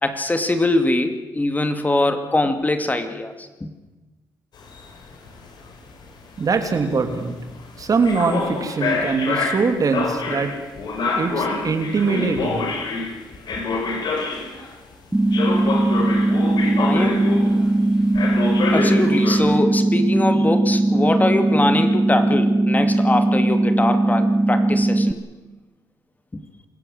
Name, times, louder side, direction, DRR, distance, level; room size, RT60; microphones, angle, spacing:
voice 1, 0.0-3.7 16.0-16.1 16.8-17.3 18.7-25.2 26.3-26.4, left 2 dB, 20° left, 7 dB, 2.5 m, -22 dB
sound 1, 4.6-14.8 15.3-17.8 18.1-19.4, left 3 dB, 65° left, 5.2 m, -27 dB
voice 2, 6.4-7.4 7.8-10.5 11.1-12.7, right 4 dB, 50° right, 7 dB, 3.3 m, -22 dB
sound 2, 15.1-25.1, right 2 dB, 10° right, 1.1 m, -19 dB
26.5 x 15.5 x 7.9 m, 1.1 s
supercardioid pair, 65°, 8 cm